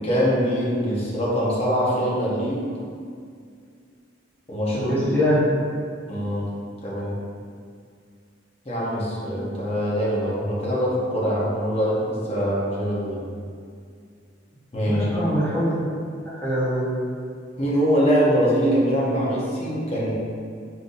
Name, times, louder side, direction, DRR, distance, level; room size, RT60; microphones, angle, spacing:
voice 1, 0.0-2.6 4.5-4.9 6.1-6.6 6.8-7.2 8.6-13.2 14.7-15.1 17.6-20.1, equal, 30° left, -7 dB, 1.0 m, -23 dB
voice 2, 4.9-5.5 14.8-15.7 16.2-17.0, equal, 10° left, -10 dB, 1.2 m, -23 dB
4.6 x 3.9 x 2.7 m, 2.2 s
head